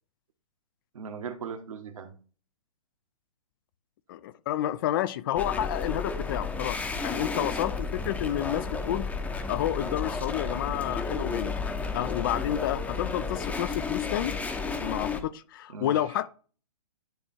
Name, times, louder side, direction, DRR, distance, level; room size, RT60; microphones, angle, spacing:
voice 1, 0.9-2.1 15.7-16.0, right 6 dB, 65° right, 1.5 m, -38 dB
voice 2, 4.1-9.0 9.5-11.6 11.9-14.4 14.8-16.3, left 12 dB, 40° left, 0.5 m, -30 dB
sound 1, 5.3-15.2, left 4 dB, 10° left, 0.8 m, -32 dB
10.0 x 3.4 x 4.2 m
hypercardioid pair, 130°, 18 cm